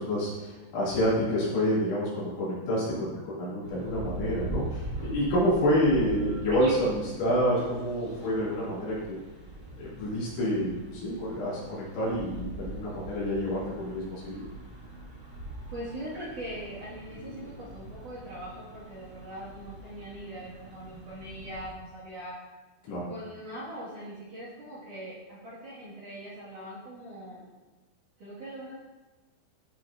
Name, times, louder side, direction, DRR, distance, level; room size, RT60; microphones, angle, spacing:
voice 1, 0.0-9.2 9.8-14.4 22.9-23.1, equal, 70° left, -9 dB, 5.3 m, -28 dB
sound 1, 3.6-21.7, right 1 dB, 25° right, 3.1 m, -42 dB
voice 2, 15.7-22.4 23.0-27.5 28.2-28.7, right 1 dB, 50° right, -9 dB, 3.2 m, -41 dB
14.5 x 6.1 x 2.8 m, 1.2 s
omnidirectional pair, 5.7 m